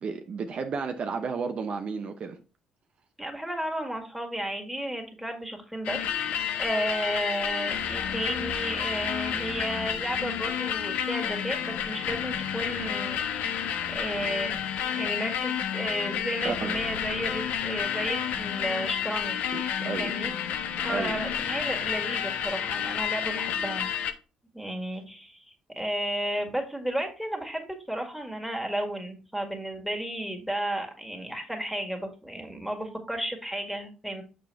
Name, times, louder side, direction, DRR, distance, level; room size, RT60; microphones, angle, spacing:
voice 1, 0.0-2.4 16.4-16.7 19.5-20.1 20.9-21.1, right 5 dB, 50° right, 0.7 m, -32 dB
voice 2, 3.2-13.6 13.9-14.7 14.9-19.4 20.0-20.3 20.8-23.9 24.5-34.2, right 1 dB, ahead, 1.9 m, -33 dB
sound 1, 5.8-24.1, left 9 dB, 70° left, 0.6 m, -30 dB
6.7 x 4.9 x 3.4 m
hypercardioid pair, 60°, 3 cm